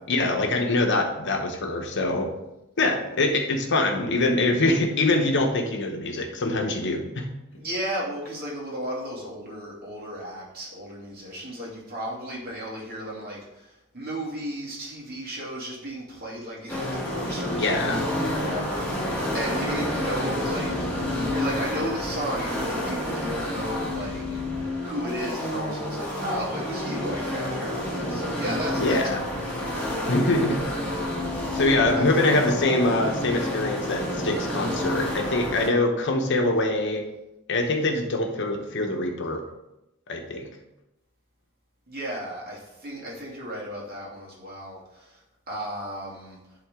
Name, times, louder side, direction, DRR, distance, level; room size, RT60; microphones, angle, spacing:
voice 1, 0.1-2.3 2.8-7.3 17.5-18.0 28.8-29.2 30.1-30.6 31.5-37.0 37.5-39.4 40.1-40.5, left 2 dB, 55° left, 3 dB, 1.0 m, -24 dB
voice 2, 7.6-20.8 21.3-24.5 24.8-29.3 29.6-30.1 31.9-32.1 41.9-45.2 45.5-46.4, equal, 45° right, -4 dB, 2.4 m, -34 dB
sound 1, 16.7-35.7, left 1 dB, 5° left, 1.6 m, -29 dB
11.0 x 3.8 x 3.7 m, 0.92 s
head